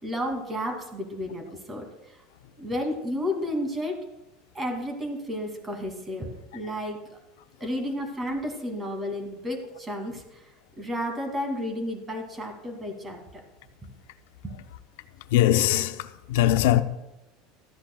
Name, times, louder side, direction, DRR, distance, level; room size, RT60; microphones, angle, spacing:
voice 1, 0.0-1.9 2.6-4.1 4.5-7.2 7.6-10.4 10.8-13.4 14.4-14.5, equal, 15° right, 2.5 m, -32 dB
voice 2, 6.5-6.8 15.3-16.8, left 13 dB, 85° left, 0.7 m, -22 dB
15.5 x 13.0 x 2.3 m
supercardioid pair, 135°, 0 cm